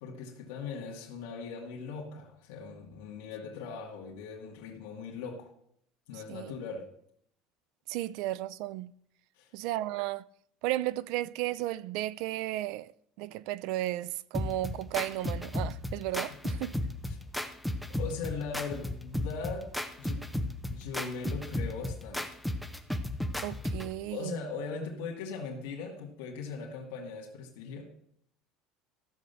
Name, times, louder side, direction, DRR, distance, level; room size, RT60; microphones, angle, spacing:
voice 1, 0.0-5.5 6.1-6.9 9.4-9.5 16.3-16.4 17.9-19.7 20.0-20.3 20.7-22.4 24.1-27.9, left 5 dB, 90° left, 2.3 m, -39 dB
voice 2, 6.1-6.5 7.9-8.9 9.5-10.2 10.6-12.9 13.2-16.7 23.4-24.4, right 15 dB, 65° right, 0.4 m, -34 dB
sound 1, 14.3-23.9, left 1 dB, ahead, 0.7 m, -34 dB
13.5 x 6.5 x 7.1 m
cardioid pair, 155°, 0 cm